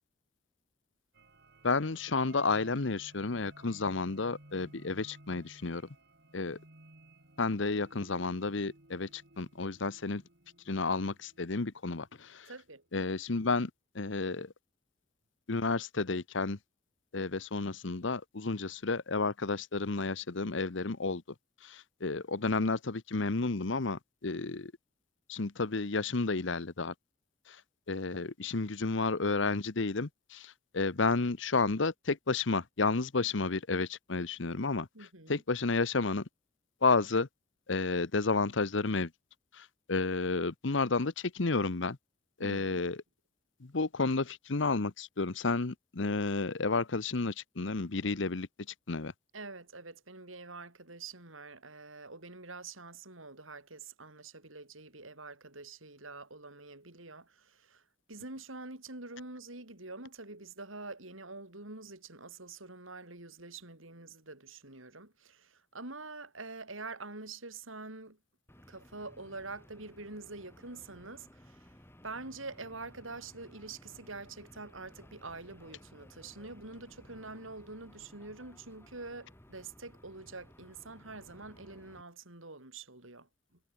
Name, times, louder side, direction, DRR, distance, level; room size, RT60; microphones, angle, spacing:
sound 1, 1.1-12.4, right 1 dB, 55° right, 4.9 m, -57 dB
voice 1, 1.6-5.8 6.3-6.6 7.4-10.2 10.7-12.5 12.9-14.5 15.5-16.6 17.1-21.2 21.6-24.7 25.3-26.9 27.5-27.6 27.9-34.9 35.3-36.3 36.8-37.3 37.7-39.1 39.5-42.0 42.4-43.0 43.6-48.5 48.9-49.1, left 3 dB, 65° left, 1.0 m, -31 dB
voice 2, 12.5-12.8 34.9-35.4 42.4-42.8 49.3-68.2 68.7-71.8 72.0-83.6, right 3 dB, 80° right, 6.1 m, -46 dB
sound 2, 68.5-82.0, equal, 10° left, 4.3 m, -58 dB
head